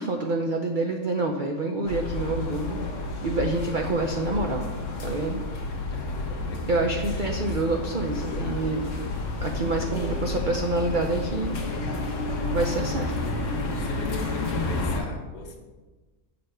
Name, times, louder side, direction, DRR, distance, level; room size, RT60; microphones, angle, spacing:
voice 1, 0.0-2.8 3.2-4.7 5.0-5.4 6.7-8.8 9.4-11.5 12.5-13.2, right 2 dB, 75° right, 2 dB, 0.4 m, -27 dB
sound 1, 1.9-15.0, left 2 dB, 55° left, 1.2 m, -30 dB
voice 2, 5.9-6.6 7.0-7.3 9.8-10.4 13.8-15.6, left 3 dB, 85° left, 2 dB, 1.7 m, -39 dB
7.6 x 4.2 x 5.3 m, 1.2 s
omnidirectional pair, 1.7 m